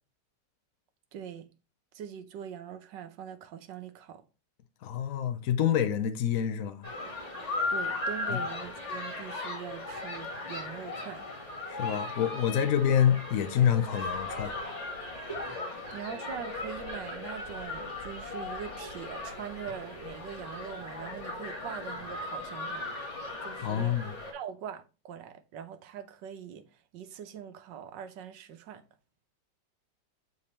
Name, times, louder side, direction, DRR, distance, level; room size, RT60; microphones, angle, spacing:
voice 1, 1.1-1.5 1.9-4.2 7.7-11.3 15.9-22.9 23.4-24.0 24.3-28.8, right 8 dB, 80° right, 1.5 m, -42 dB
voice 2, 4.8-6.9 8.3-8.4 11.7-14.6 23.6-24.1, left 9 dB, 60° left, 1.0 m, -27 dB
sound 1, 6.8-24.3, left 2 dB, 40° left, 2.4 m, -37 dB
6.9 x 4.2 x 4.2 m
omnidirectional pair, 1.9 m